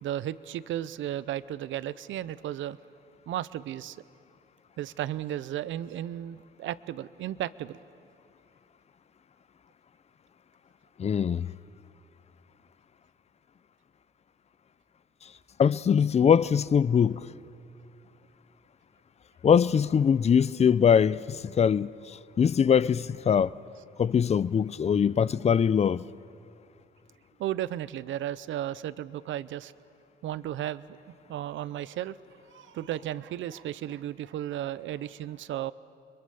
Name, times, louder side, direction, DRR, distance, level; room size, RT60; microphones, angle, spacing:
voice 1, 0.0-2.8 3.3-4.0 4.8-7.8 27.4-29.7 30.2-31.0 31.3-32.2 32.5-35.7, right 12 dB, 75° right, 0.6 m, -34 dB
voice 2, 11.0-11.5 15.6-17.3 19.4-23.5 24.0-26.0, left 7 dB, 35° left, 0.5 m, -22 dB
29.0 x 22.0 x 6.9 m
cardioid pair, 90°, 20 cm